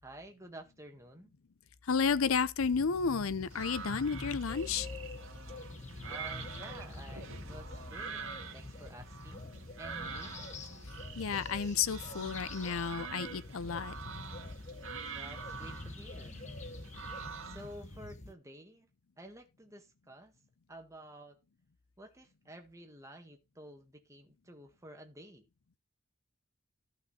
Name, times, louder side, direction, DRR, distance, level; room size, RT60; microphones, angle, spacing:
voice 1, 0.0-1.3 6.0-8.2 8.5-10.3 15.1-16.4 17.4-18.9 19.2-20.3 20.7-21.4 22.0-25.5, right 1 dB, 15° right, 1.7 m, -51 dB
voice 2, 1.8-4.9 10.9-14.0, left 5 dB, 85° left, 0.6 m, -32 dB
sound 1, 2.6-18.3, left 2 dB, 35° left, 0.8 m, -46 dB
Gnous-En nombre+amb, 3.5-17.8, right 6 dB, 75° right, 1.9 m, -46 dB
14.5 x 5.4 x 4.1 m
head